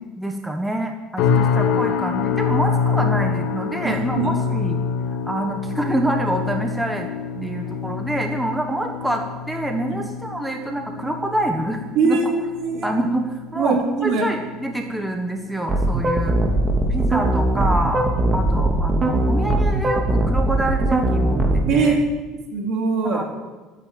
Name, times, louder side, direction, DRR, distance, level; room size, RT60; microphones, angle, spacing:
voice 1, 0.2-4.8 5.2-7.1 7.4-12.2 12.8-16.3 16.9-22.0 23.0-23.2, right 1 dB, 5° right, 3 dB, 1.3 m, -26 dB
sound 1, 1.2-16.4 16.7-17.1 17.6-17.8, left 6 dB, 70° left, 2.6 m, -26 dB
voice 2, 3.8-4.3 7.3-7.5 11.9-12.9 13.6-14.2 21.7-22.1 22.5-23.2, right 4 dB, 60° right, 1 dB, 3.9 m, -21 dB
sound 2, 15.7-21.7, right 1 dB, 25° right, 2.6 m, -20 dB
13.5 x 9.5 x 8.8 m, 1.3 s
cardioid pair, 130°, 0 cm